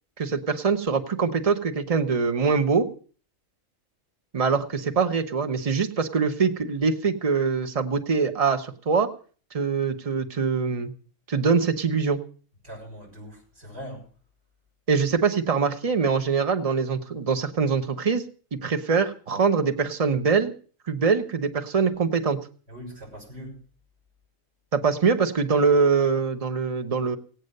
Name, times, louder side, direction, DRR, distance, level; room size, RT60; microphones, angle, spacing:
voice 1, 0.2-2.9 4.3-9.1 9.5-10.9 11.3-12.2 14.9-18.2 18.6-20.5 20.9-22.4 24.7-27.2, right 5 dB, 30° right, 7 dB, 1.1 m, -23 dB
voice 2, 12.6-14.0 22.7-23.6, equal, 50° right, -2 dB, 7.2 m, -41 dB
16.5 x 9.3 x 6.6 m, 0.41 s
omnidirectional pair, 1.4 m